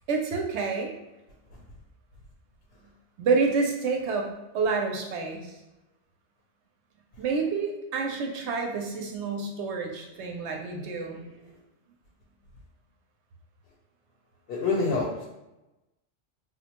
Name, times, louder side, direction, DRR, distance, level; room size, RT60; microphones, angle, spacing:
voice 1, 0.1-0.9 3.2-5.5 7.2-11.4, right 4 dB, 70° right, 2 dB, 0.8 m, -28 dB
voice 2, 14.5-15.2, left 3 dB, 65° left, -2 dB, 0.8 m, -27 dB
4.0 x 2.1 x 2.9 m, 0.99 s
omnidirectional pair, 1.2 m